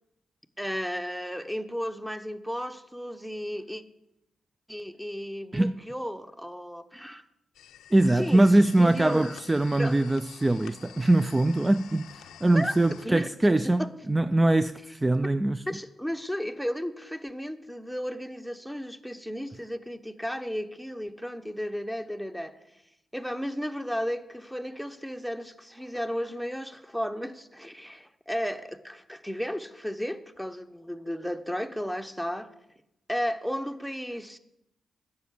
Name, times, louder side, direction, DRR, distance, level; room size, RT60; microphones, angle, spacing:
voice 1, 0.6-3.8 4.7-7.2 8.1-9.4 9.8-10.1 12.5-12.7 13.0-13.9 15.7-22.6 23.1-32.5 33.1-34.4, equal, ahead, 1.0 m, -34 dB
sound 1, 7.5-13.1, left 10 dB, 80° left, 0.5 m, -49 dB
voice 2, 7.9-15.6, right 1 dB, 20° right, 0.4 m, -23 dB
10.0 x 7.0 x 8.3 m
supercardioid pair, 45°, 0 cm